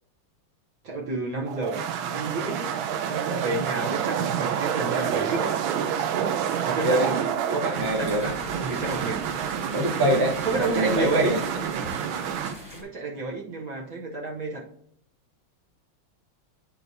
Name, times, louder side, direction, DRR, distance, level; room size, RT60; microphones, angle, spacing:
voice 1, 0.8-2.7 3.1-5.6 6.6-9.2 10.4-11.7 12.7-14.6, right 3 dB, 55° right, -2 dB, 1.0 m, -31 dB
sound 1, 1.5-12.6, right 8 dB, 85° right, 1.4 m, -28 dB
voice 2, 7.6-8.3 9.7-11.4, right 1 dB, 30° right, 1 dB, 0.4 m, -24 dB
sound 2, 7.7-12.8, left 1 dB, 5° right, 0.9 m, -42 dB
9.9 x 4.5 x 2.6 m, 0.69 s
omnidirectional pair, 2.2 m